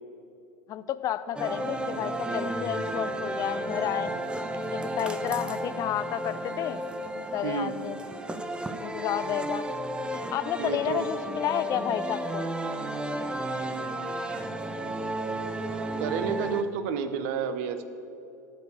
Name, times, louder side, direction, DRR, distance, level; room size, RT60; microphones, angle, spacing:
voice 1, 0.7-4.1 4.7-6.8 7.3-8.0 8.8-9.7 10.3-12.5, left 11 dB, 35° left, 13 dB, 0.5 m, -31 dB
sound 1, 1.4-16.6, right 1 dB, 10° right, 0.7 m, -33 dB
voice 2, 7.4-7.7 10.6-11.1 16.0-17.8, right 6 dB, 55° right, 10 dB, 0.8 m, -30 dB
12.0 x 4.7 x 8.2 m, 2.7 s
figure-of-eight pair, 80°, 9 cm